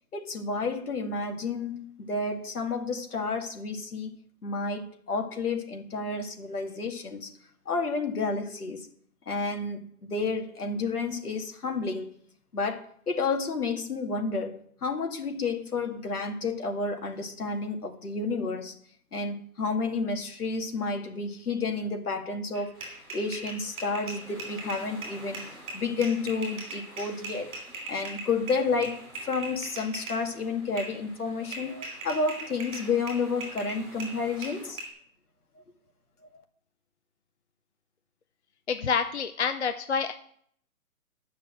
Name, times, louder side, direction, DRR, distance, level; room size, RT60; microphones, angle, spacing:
voice 1, 0.1-4.1 4.4-7.3 7.7-8.9 9.3-12.1 12.5-18.7 19.1-22.7 23.1-27.5 27.9-34.8 36.3-36.4, left 4 dB, 85° left, 2.2 m, -31 dB
sound 1, 22.5-30.2 30.8-31.0 31.5-34.9, right 2 dB, 20° right, 2.9 m, -40 dB
sound 2, 22.7-34.7, equal, ahead, 2.4 m, -51 dB
voice 2, 38.7-40.1, left 6 dB, 50° left, 0.6 m, -27 dB
9.7 x 5.9 x 7.7 m
hypercardioid pair, 180°, 44 cm